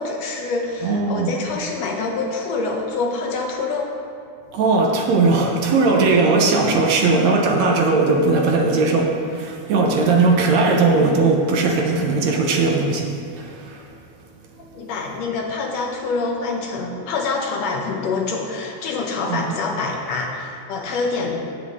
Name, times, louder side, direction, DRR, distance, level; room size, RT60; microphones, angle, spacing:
voice 1, 0.0-3.9 14.7-21.4, left 3 dB, 70° left, 1 dB, 1.9 m, -26 dB
voice 2, 0.8-1.3 4.5-13.1 13.4-13.9 19.3-19.5, right 3 dB, 70° right, 1 dB, 2.2 m, -18 dB
16.5 x 7.5 x 3.7 m, 2.3 s
omnidirectional pair, 3.3 m